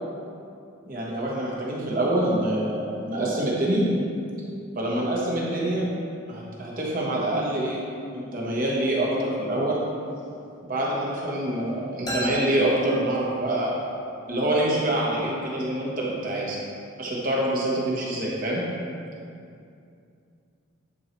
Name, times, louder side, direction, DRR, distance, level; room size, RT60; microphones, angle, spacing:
voice 1, 0.9-3.8 4.7-5.8 6.3-7.8 8.1-9.8 10.7-13.8 14.3-16.6 17.0-18.6, right 1 dB, 40° right, -4 dB, 1.2 m, -26 dB
sound 1, 12.1-13.8, equal, 20° left, 1.1 m, -35 dB
9.6 x 4.7 x 3.2 m, 2.5 s
head